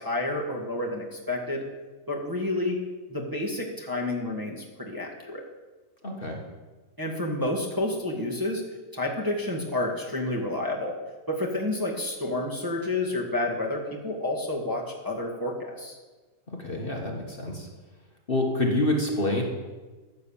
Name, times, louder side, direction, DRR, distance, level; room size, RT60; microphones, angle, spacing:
voice 1, 0.0-1.6 2.1-2.8 3.1-5.4 7.0-8.6 8.9-10.9 11.3-16.0, left 2 dB, 15° right, -2 dB, 1.6 m, -29 dB
voice 2, 6.0-6.4 16.6-17.7 18.3-19.4, left 1 dB, 35° left, 0 dB, 1.6 m, -27 dB
14.5 x 7.5 x 7.1 m, 1.3 s
omnidirectional pair, 1.7 m